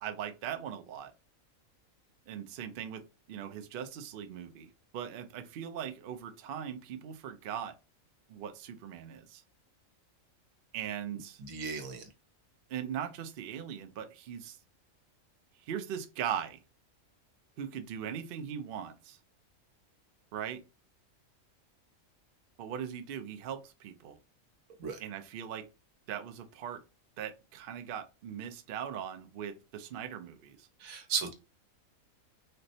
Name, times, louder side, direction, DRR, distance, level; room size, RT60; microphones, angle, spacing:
voice 1, 0.0-1.1 2.3-7.7 8.3-9.4 10.7-11.4 12.7-14.6 15.6-16.6 17.6-19.2 20.3-20.6 22.6-24.2 25.0-25.7 26.1-26.8 27.2-30.7, right 9 dB, 70° right, 0.5 m, -40 dB
voice 2, 11.5-12.1 24.8-25.0 30.8-31.3, right 6 dB, 85° right, 1.2 m, -35 dB
4.3 x 2.0 x 2.6 m
omnidirectional pair, 1.4 m